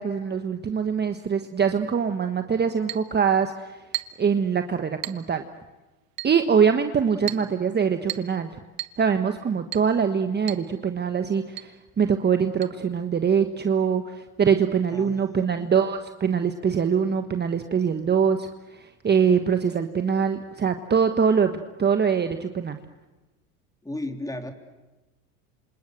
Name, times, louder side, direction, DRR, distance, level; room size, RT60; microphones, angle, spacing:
voice 1, 0.0-3.8 4.2-5.4 6.2-8.5 9.0-22.8, right 6 dB, 20° right, 7 dB, 1.3 m, -23 dB
Chink clink, 2.9-3.1 3.9-4.3 5.0-5.3 6.2-6.4 7.3-7.5 8.1-8.4 8.8-9.0 9.7-9.9 10.5-10.7 10.9-11.0 11.6-11.7 12.6-12.7, right 16 dB, 50° right, 1.6 m, -34 dB
voice 2, 7.1-7.5 14.9-15.7 23.8-24.5, left 1 dB, 10° left, 5 dB, 3.4 m, -36 dB
28.0 x 27.0 x 7.9 m, 1.1 s
hypercardioid pair, 100°, 44 cm